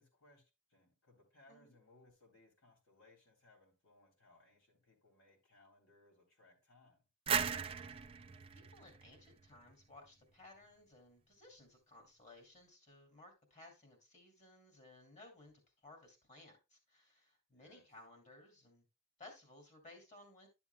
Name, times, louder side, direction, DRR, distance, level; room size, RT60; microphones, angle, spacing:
voice 1, 0.0-7.0 17.5-17.9, left 2 dB, 65° left, 0 dB, 3.4 m, -67 dB
sound 1, 7.3-10.0, right 7 dB, 25° right, 0.4 m, -38 dB
voice 2, 7.9-18.8 19.2-20.5, left 2 dB, 35° left, 2 dB, 2.6 m, -59 dB
11.5 x 7.0 x 2.2 m, 0.26 s
head